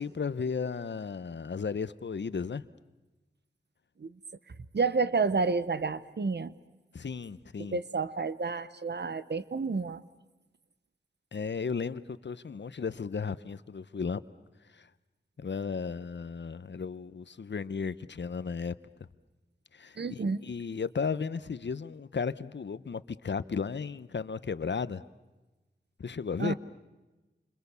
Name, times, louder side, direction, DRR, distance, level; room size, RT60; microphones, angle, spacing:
voice 1, 0.0-2.6 6.9-7.8 11.3-14.2 14.7-14.9 15.4-18.7 19.7-25.0 26.0-26.5, left 5 dB, 75° left, 15 dB, 0.9 m, -34 dB
voice 2, 4.7-6.5 7.7-10.0 20.0-20.4 26.4-26.5, right 4 dB, 70° right, 14 dB, 1.0 m, -30 dB
28.5 x 26.0 x 6.9 m, 1.1 s
wide cardioid pair, 70°, 19 cm